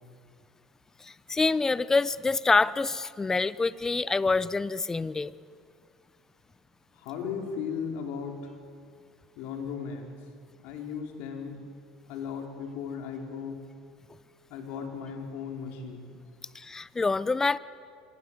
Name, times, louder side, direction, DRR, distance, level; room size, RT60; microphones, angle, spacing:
voice 1, 1.0-5.3 16.5-17.6, left 3 dB, 20° left, 18 dB, 0.8 m, -26 dB
voice 2, 6.9-8.5 9.4-10.1 10.6-11.6 12.1-13.6 14.5-16.2, left 6 dB, 65° left, 2 dB, 4.9 m, -36 dB
25.5 x 22.0 x 8.1 m, 2.2 s
hypercardioid pair, 80°, 3 cm